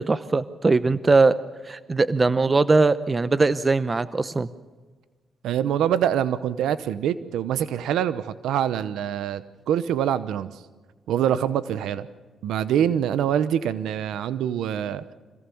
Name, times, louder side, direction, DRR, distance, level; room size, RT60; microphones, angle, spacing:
voice 1, 0.0-1.4 1.6-4.5, right 3 dB, 30° right, 15 dB, 0.8 m, -20 dB
voice 2, 5.4-10.6 11.1-12.1 12.4-15.1, right 9 dB, 90° right, 14 dB, 0.9 m, -25 dB
26.0 x 17.5 x 7.1 m, 1.3 s
cardioid pair, 90°, 0 cm